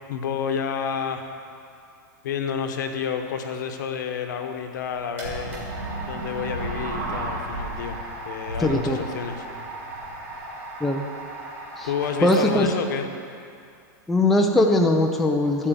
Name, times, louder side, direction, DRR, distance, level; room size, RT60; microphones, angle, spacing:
voice 1, 0.1-1.3 2.2-5.6 6.1-9.5 11.8-13.1, left 7 dB, 70° left, 5 dB, 1.0 m, -29 dB
sound 1, 4.7-12.7, right 2 dB, 20° right, 2.5 m, -38 dB
sound 2, 5.2-8.1 8.4-10.4, right 1 dB, 70° right, 2.1 m, -34 dB
voice 2, 8.6-9.0 10.8-11.0 11.8-11.9 12.2-12.7 14.1-15.7, left 1 dB, ahead, 1 dB, 0.3 m, -20 dB
12.0 x 4.6 x 7.6 m, 2.5 s
supercardioid pair, 170°, 10 cm